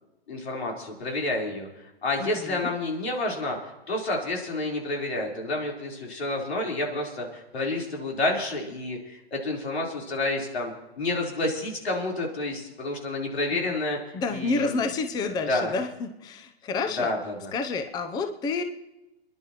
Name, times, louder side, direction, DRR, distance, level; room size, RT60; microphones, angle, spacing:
voice 1, 0.3-1.7 2.0-3.6 3.9-14.0 14.3-14.9 15.5-15.7 17.0-17.5, left 2 dB, 85° left, -1 dB, 4.1 m, -29 dB
voice 2, 2.2-2.7 13.5-13.8 14.1-17.1 17.5-18.6, left 3 dB, 15° left, 7 dB, 0.7 m, -29 dB
30.0 x 11.0 x 3.0 m, 0.95 s
hypercardioid pair, 135°, 31 cm